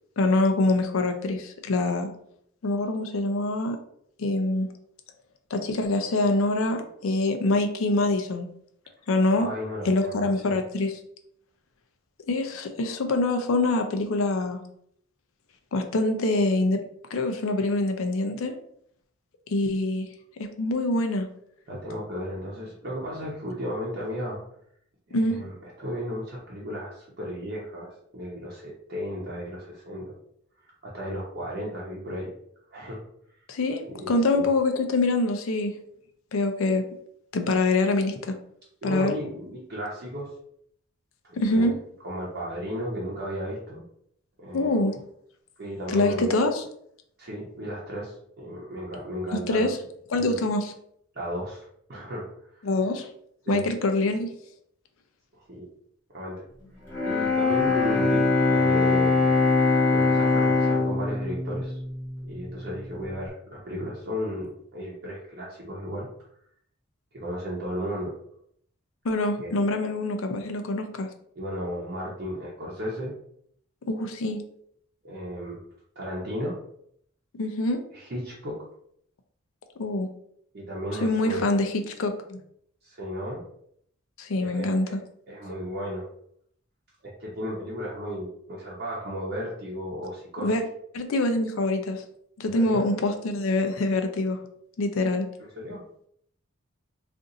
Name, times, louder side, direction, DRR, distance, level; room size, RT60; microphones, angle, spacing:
voice 1, 0.2-2.1 2.6-3.8 4.2-4.7 5.5-8.5 9.1-9.5 9.8-10.9 12.3-14.6 15.7-16.8 17.1-18.5 19.5-20.1 20.6-21.3 25.1-25.4 33.5-35.7 36.3-36.8 37.3-38.4 38.8-39.1 41.4-41.7 44.5-45.0 45.9-46.6 49.5-49.8 50.1-50.7 52.6-53.1 53.5-54.3 69.0-71.1 73.9-74.4 77.4-77.8 79.8-80.1 81.0-81.7 82.0-82.4 84.2-85.0 90.4-90.6 90.9-92.0 92.4-94.4 94.8-95.3, left 2 dB, 75° left, 6 dB, 0.5 m, -25 dB
voice 2, 9.4-10.6 21.7-24.4 25.1-30.1 30.8-32.3 32.7-33.0 33.9-34.5 38.8-40.3 41.2-41.7 42.0-43.8 44.4-44.8 45.6-46.3 47.2-49.7 50.1-50.2 51.1-52.3 52.5-52.6 53.4-53.7 55.3-55.7 56.1-56.4 57.0-58.2 58.5-59.5 59.9-61.8 62.2-66.1 67.1-68.2 69.4-69.6 71.4-73.1 75.0-75.6 76.0-76.6 77.9-78.6 80.5-81.5 82.8-83.4 84.4-84.9 85.3-86.1 87.0-90.5 92.4-92.8 95.6-95.8, equal, 50° right, -5 dB, 0.7 m, -34 dB
Bowed string instrument, 56.9-62.9, left 3 dB, 10° left, 1.0 m, -23 dB
2.6 x 2.5 x 3.9 m, 0.68 s
head